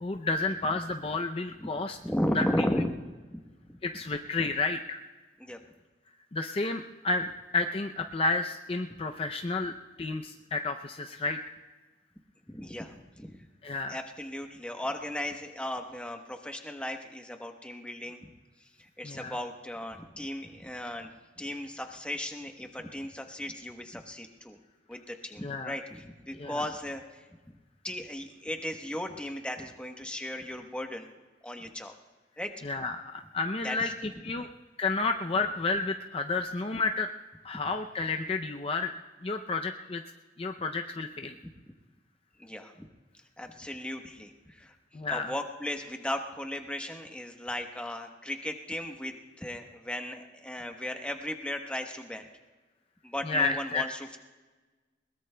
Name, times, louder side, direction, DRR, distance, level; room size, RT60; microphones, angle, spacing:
voice 1, 0.0-2.0 2.4-2.5 3.8-5.0 6.3-7.3 7.5-11.5 13.6-14.0 19.0-19.3 25.4-25.7 26.4-26.6 32.6-34.5 34.8-37.1 37.4-38.9 39.2-40.0 40.4-41.3 44.9-45.3 53.3-53.8, left 3 dB, 30° left, 5 dB, 0.5 m, -31 dB
voice 2, 2.0-2.9 3.7-3.8 5.4-5.6 12.5-13.4 13.9-18.3 18.8-21.1 21.4-24.6 24.9-27.3 27.8-31.1 31.4-31.9 32.4-32.5 33.6-33.9 42.4-42.9 43.4-44.7 45.1-52.2 53.0-54.2, left 1 dB, 5° left, 4 dB, 1.0 m, -36 dB
21.5 x 20.5 x 2.2 m, 1.3 s
head